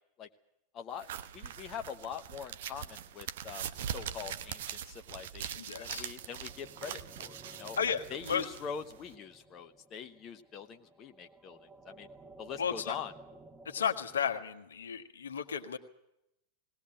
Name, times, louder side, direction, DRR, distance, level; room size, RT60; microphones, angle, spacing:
voice 1, 0.7-7.8 8.1-12.1 12.4-13.1, left 7 dB, 30° left, 6 dB, 0.9 m, -44 dB
sound 1, 1.0-9.1, right 9 dB, 55° right, 0.9 m, -42 dB
voice 2, 5.6-6.1 7.8-8.4 12.6-13.0 13.6-15.8, left 7 dB, 70° left, 5 dB, 1.5 m, -33 dB
sound 2, 5.6-14.3, right 2 dB, 15° right, 1.4 m, -55 dB
19.0 x 19.0 x 8.7 m, 0.84 s
figure-of-eight pair, 90°, 0 cm